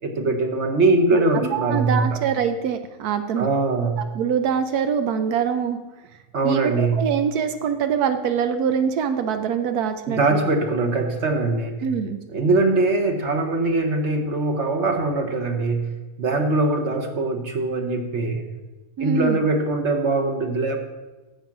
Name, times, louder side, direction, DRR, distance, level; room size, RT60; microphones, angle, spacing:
voice 1, 0.0-2.2 3.4-4.0 6.3-7.0 10.1-11.8 12.3-15.9 16.2-18.4 19.0-20.8, right 2 dB, 50° right, 4 dB, 1.3 m, -22 dB
voice 2, 1.5-3.5 4.1-5.8 6.4-10.4 11.8-12.2 19.0-19.4, right 7 dB, 80° right, 8 dB, 1.2 m, -24 dB
10.0 x 7.6 x 5.9 m, 1.1 s
omnidirectional pair, 1.6 m